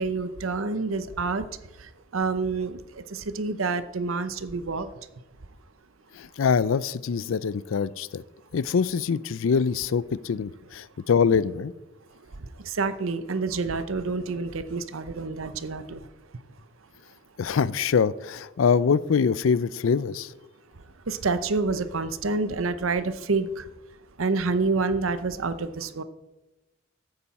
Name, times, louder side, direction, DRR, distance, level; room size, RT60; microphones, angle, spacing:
voice 1, 0.0-1.5 1.8-4.9 12.6-16.0 21.1-23.6 24.2-26.0, right 4 dB, 80° right, 12 dB, 0.8 m, -28 dB
voice 2, 6.2-8.2 8.5-11.7 17.4-20.3, left 6 dB, 70° left, 19 dB, 0.4 m, -24 dB
14.5 x 8.9 x 4.2 m, 1.0 s
head